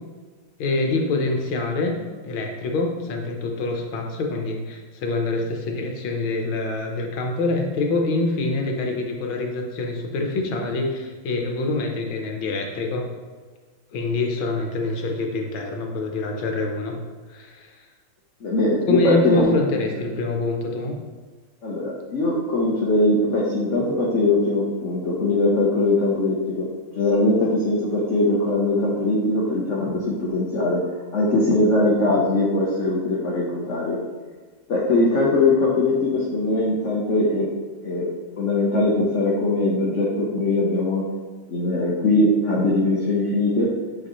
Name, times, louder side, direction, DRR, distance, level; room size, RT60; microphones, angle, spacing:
voice 1, 0.6-2.0 2.2-13.0 13.9-16.9 17.3-17.8 18.9-20.9, left 2 dB, 80° left, 2 dB, 1.8 m, -25 dB
voice 2, 18.4-19.5 21.6-26.7 26.9-30.8 31.1-34.0 34.7-37.5 37.8-38.0 38.4-41.0 41.5-43.7, left 2 dB, 45° left, -4 dB, 1.1 m, -21 dB
9.0 x 4.8 x 3.1 m, 1.4 s
omnidirectional pair, 2.2 m